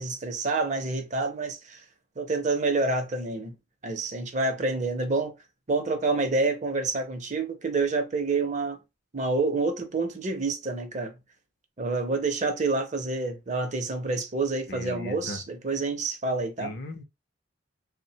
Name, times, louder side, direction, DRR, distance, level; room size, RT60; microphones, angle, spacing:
voice 1, 0.0-1.8 2.2-3.5 3.8-5.3 5.7-8.8 9.1-11.1 11.8-16.7, right 3 dB, 35° right, 0.5 m, -28 dB
voice 2, 14.7-15.4 16.6-17.0, left 2 dB, 50° left, 0.5 m, -37 dB
3.2 x 2.1 x 2.7 m
head